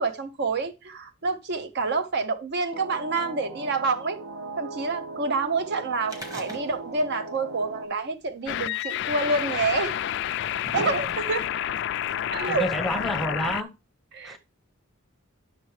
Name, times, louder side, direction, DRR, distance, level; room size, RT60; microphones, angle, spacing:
voice 1, 0.0-4.2 4.6-9.9 10.7-11.4 12.3-12.7 14.1-14.4, right 3 dB, 50° right, 0.5 m, -28 dB
sound 1, 2.7-7.9, right 3 dB, 70° right, 1.1 m, -39 dB
sound 2, 6.0-7.1 7.3-7.4 8.4-8.5 9.4-9.5 10.2-11.5 12.4-12.5, right 1 dB, 15° right, 1.0 m, -40 dB
sound 3, 8.5-13.6, left 11 dB, 55° left, 0.3 m, -29 dB
voice 2, 12.5-13.7 14.2-14.4, equal, ahead, 0.7 m, -29 dB
9.1 x 6.3 x 3.1 m
head